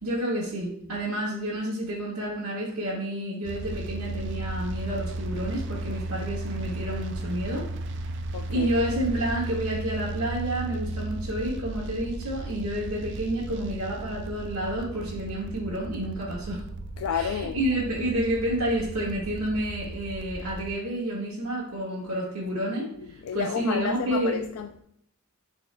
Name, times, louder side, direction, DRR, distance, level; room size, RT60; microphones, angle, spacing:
voice 1, 0.0-7.6 8.5-16.6 17.1-22.9 23.3-24.4, right 1 dB, 90° right, 1.6 m, -29 dB
sound 1, 3.4-20.7, right 2 dB, 55° right, 0.4 m, -35 dB
voice 2, 8.3-8.7 17.0-17.7 22.9-24.8, left 7 dB, 75° left, 0.3 m, -31 dB
10.0 x 4.4 x 2.2 m
head